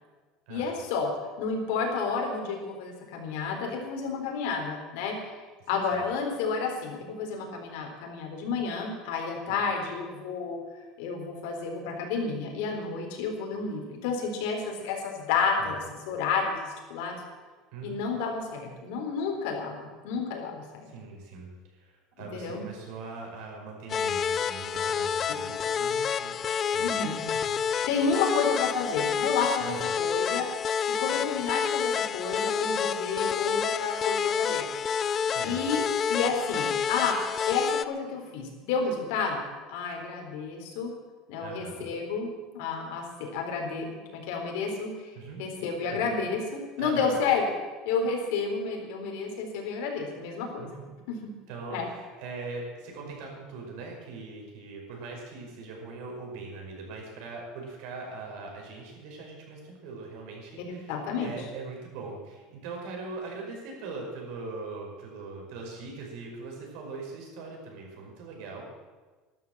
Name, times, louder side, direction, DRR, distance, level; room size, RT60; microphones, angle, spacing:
voice 1, 0.5-1.1 1.4-5.2 5.7-10.6 11.0-17.2 17.8-20.6 22.2-22.6 26.8-27.2 27.9-34.6 35.4-35.8 36.1-37.2 37.5-39.4 39.7-40.9 41.3-42.3 42.5-43.9 44.1-47.4 47.8-50.7 51.1-51.2 51.7-51.9 60.9-61.3, left 5 dB, 70° left, 2 dB, 4.0 m, -30 dB
voice 2, 20.9-26.4 26.7-27.0 27.3-27.5 29.6-29.9 35.3-35.6 41.4-41.9 45.2-46.0 46.8-47.2 50.6-50.9 51.5-60.9 61.2-68.6, right 3 dB, 60° right, 0 dB, 5.3 m, -41 dB
sound 1, 23.9-37.9, left 7 dB, 25° left, 0.4 m, -29 dB
13.0 x 12.5 x 7.4 m, 1.3 s
cardioid pair, 175°, 0 cm